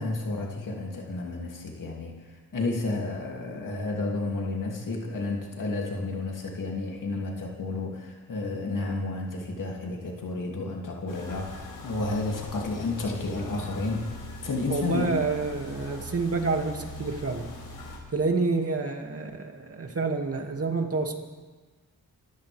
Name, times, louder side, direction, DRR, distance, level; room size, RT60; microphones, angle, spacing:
voice 1, 0.0-14.1 14.4-15.1, left 2 dB, 60° left, -1 dB, 2.9 m, -31 dB
sound 1, 11.1-18.0, left 2 dB, 80° left, 5.0 m, -41 dB
voice 2, 14.7-17.5 18.1-21.2, right 3 dB, 40° right, 3 dB, 2.4 m, -28 dB
26.0 x 15.0 x 3.6 m, 1.3 s
cardioid pair, 80°, 36 cm